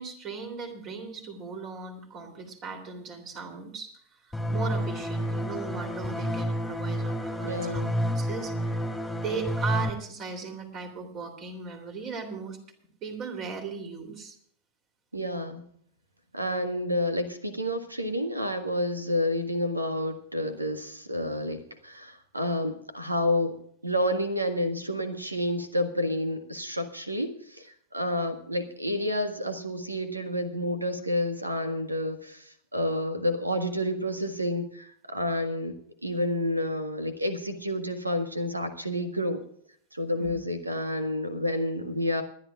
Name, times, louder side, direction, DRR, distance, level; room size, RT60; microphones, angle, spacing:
voice 1, 0.0-3.9 4.2-7.9 8.1-8.9 9.2-12.6 13.0-14.4 40.2-40.4, right 5 dB, 35° right, 6 dB, 3.3 m, -37 dB
sound 1, 4.3-9.9, equal, ahead, 2.3 m, -30 dB
voice 2, 7.4-8.0 15.1-15.6 16.3-23.6 23.8-35.8 36.0-39.4 39.9-42.2, left 1 dB, 85° right, 9 dB, 1.7 m, -29 dB
29.0 x 11.0 x 2.4 m, 0.63 s
figure-of-eight pair, 90°, 0 cm